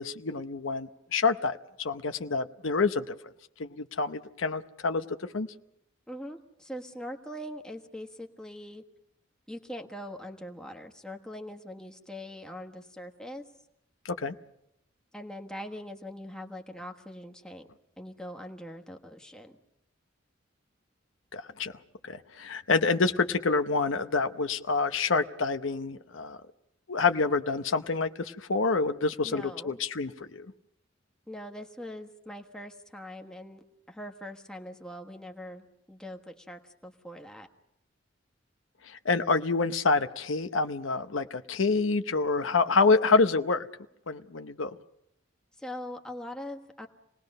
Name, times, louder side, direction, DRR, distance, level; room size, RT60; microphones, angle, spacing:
voice 1, 0.0-3.2 3.6-5.0 5.3-5.5 14.0-14.3 21.3-21.7 22.0-26.4 26.9-30.5 38.8-43.7 44.1-44.8, left 4 dB, 85° left, 9 dB, 0.8 m, -27 dB
voice 2, 6.1-8.8 9.5-13.4 15.1-17.7 18.0-19.5 29.2-29.8 31.3-33.6 33.9-37.5 45.6-46.9, equal, 5° left, 3 dB, 1.3 m, -42 dB
27.5 x 19.5 x 5.4 m, 0.80 s
head